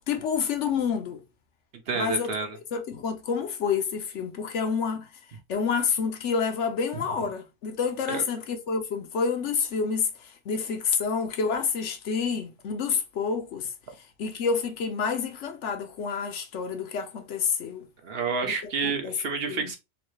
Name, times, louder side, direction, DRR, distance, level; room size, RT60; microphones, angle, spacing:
voice 1, 0.1-1.2 1.9-2.3 2.7-5.1 5.5-13.7 14.2-17.9 18.4-19.1 19.5-19.7, left 6 dB, 80° left, 1.0 m, -28 dB
voice 2, 1.9-2.6 8.1-8.2 18.0-19.8, right 5 dB, 60° right, 0.9 m, -29 dB
3.1 x 2.6 x 3.1 m
omnidirectional pair, 1.2 m